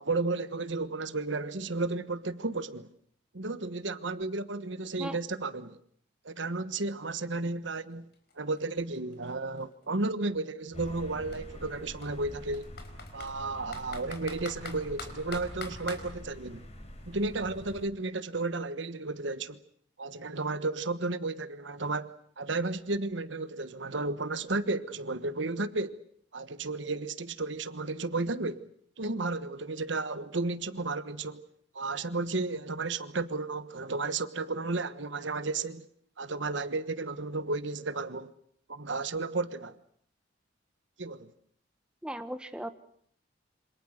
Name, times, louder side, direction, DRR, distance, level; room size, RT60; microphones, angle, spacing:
voice 1, 0.0-2.9 3.3-5.8 6.2-8.1 8.4-12.8 13.1-16.6 17.1-19.6 20.0-26.0 26.3-28.7 29.0-31.4 31.7-35.9 36.2-38.3 38.7-39.8 41.0-41.3, right 3 dB, 70° right, 1.3 m, -33 dB
Computer keyboard, 7.8-7.9 8.1-10.1 10.9-11.0 11.3-11.4 12.0-13.3 13.7-16.0, left 4 dB, 55° left, 4.6 m, -43 dB
sound 1, 10.7-17.8, equal, 35° left, 4.5 m, -46 dB
voice 2, 42.0-42.7, right 1 dB, 5° right, 1.2 m, -37 dB
28.0 x 26.0 x 6.6 m
head